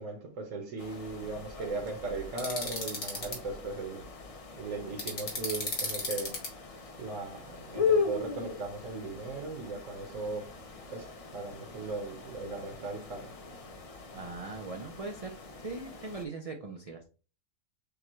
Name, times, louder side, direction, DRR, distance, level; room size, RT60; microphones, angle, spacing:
voice 1, 0.0-4.0 4.5-6.4 7.0-10.5 10.9-13.3, right 3 dB, 70° right, 1.4 m, -38 dB
sound 1, 0.8-16.3, left 5 dB, 40° left, 0.5 m, -38 dB
sound 2, 2.4-3.4 5.0-6.5, left 3 dB, 75° left, 2.0 m, -34 dB
voice 2, 14.1-15.3 15.6-17.0, right 3 dB, 50° right, 0.4 m, -40 dB
6.8 x 2.4 x 3.1 m
omnidirectional pair, 1.4 m